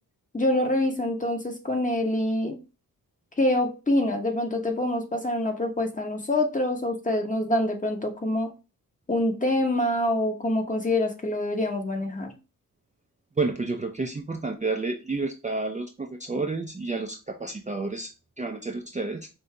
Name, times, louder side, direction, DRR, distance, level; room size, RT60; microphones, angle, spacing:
voice 1, 0.3-2.6 3.4-8.5 9.1-12.3, left 1 dB, 20° left, 1.0 m, -25 dB
voice 2, 13.4-18.1 18.4-19.3, right 3 dB, 20° right, 0.5 m, -30 dB
5.3 x 2.7 x 3.3 m
wide cardioid pair, 95°, 37 cm